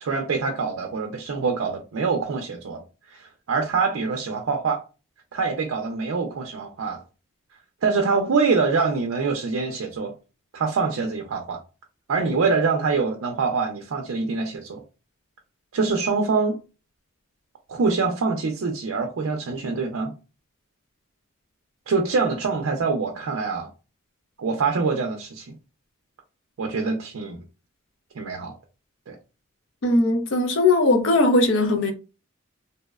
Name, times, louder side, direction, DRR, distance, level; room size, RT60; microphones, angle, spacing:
voice 1, 0.0-4.8 5.3-7.0 7.8-10.1 10.5-11.6 12.1-14.8 15.7-16.6 17.7-20.1 21.9-23.7 24.4-25.6 26.6-27.4 28.2-28.5 29.1-29.2, right 4 dB, 75° right, 0.4 m, -25 dB
voice 2, 29.8-31.9, left 2 dB, 65° left, 0.5 m, -19 dB
2.7 x 2.0 x 2.3 m
head